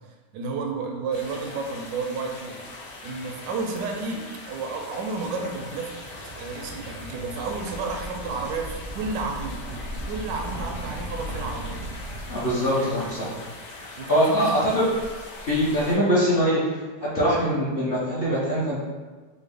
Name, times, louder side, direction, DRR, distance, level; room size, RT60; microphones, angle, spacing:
voice 1, 0.3-2.6 3.0-5.9 6.4-9.6 10.1-11.9 12.7-12.9 14.0-14.7 16.0-16.2, right 4 dB, 85° right, 2 dB, 1.3 m, -31 dB
sound 1, 1.1-16.0, left 2 dB, 75° left, 1.2 m, -41 dB
sound 2, 2.1-13.9, right 2 dB, 65° right, 0.8 m, -39 dB
voice 2, 12.3-13.3 14.1-14.8 15.5-16.6 17.0-18.8, equal, 45° left, -9 dB, 0.7 m, -22 dB
4.9 x 2.0 x 3.4 m, 1.3 s
omnidirectional pair, 1.9 m